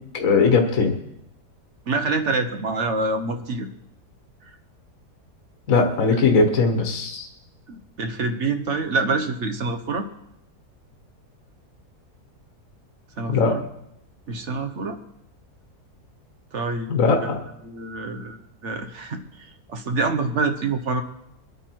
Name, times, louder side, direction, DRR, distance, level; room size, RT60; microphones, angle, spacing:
voice 1, 0.1-0.9 5.7-7.3 13.3-13.5 16.9-17.4, left 4 dB, 55° left, 4 dB, 1.7 m, -19 dB
voice 2, 1.9-3.7 4.4-4.5 7.7-10.1 13.2-13.6 14.3-15.0 16.5-17.3 17.6-21.0, right 3 dB, 50° right, 7 dB, 1.3 m, -26 dB
23.0 x 9.0 x 4.6 m, 0.80 s
omnidirectional pair, 1.7 m